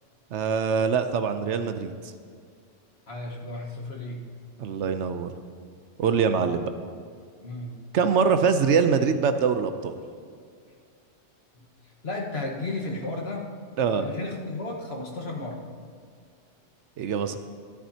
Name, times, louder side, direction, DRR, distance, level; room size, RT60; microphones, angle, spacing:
voice 1, 0.3-1.9 4.6-5.3 6.0-6.7 7.9-10.0 13.8-14.1 17.0-17.4, right 6 dB, 75° right, 9 dB, 0.9 m, -23 dB
voice 2, 3.1-4.2 6.0-6.2 7.4-7.8 11.5-11.6 12.0-13.5 13.9-15.6, left 2 dB, 55° left, -1 dB, 1.6 m, -34 dB
13.5 x 12.0 x 2.8 m, 2.1 s
omnidirectional pair, 1.3 m